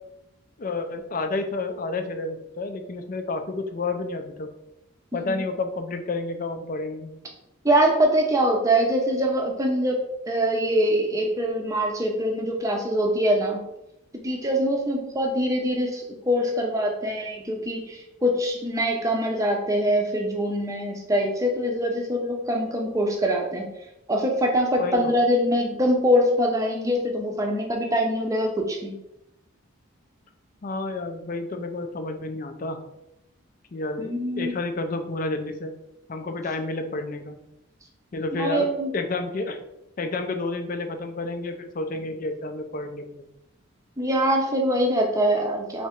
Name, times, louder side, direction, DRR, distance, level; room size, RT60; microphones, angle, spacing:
voice 1, 0.6-4.5 5.1-7.1 24.8-25.1 30.6-32.8 33.7-35.7 36.1-37.4 38.1-38.7 38.9-39.6 40.0-43.3, left 3 dB, 40° left, 6 dB, 0.4 m, -30 dB
voice 2, 5.1-5.4 7.6-10.0 10.3-13.6 14.2-23.7 24.1-28.9 34.0-34.6 38.3-38.9 44.0-45.9, equal, 15° right, 1 dB, 0.6 m, -23 dB
3.4 x 2.8 x 4.4 m, 0.86 s
head